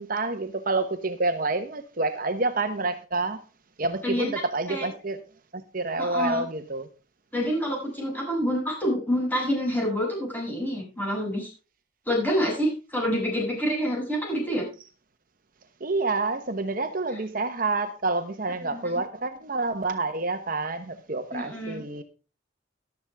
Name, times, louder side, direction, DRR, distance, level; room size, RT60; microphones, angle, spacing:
voice 1, 0.0-3.4 3.8-5.2 5.5-6.9 15.8-22.0, right 3 dB, 50° right, 1.0 m, -28 dB
voice 2, 6.0-6.5 7.3-11.5 12.1-14.7 18.7-18.9 21.3-21.8, equal, 10° left, 7.5 m, -27 dB
14.0 x 12.0 x 3.5 m
head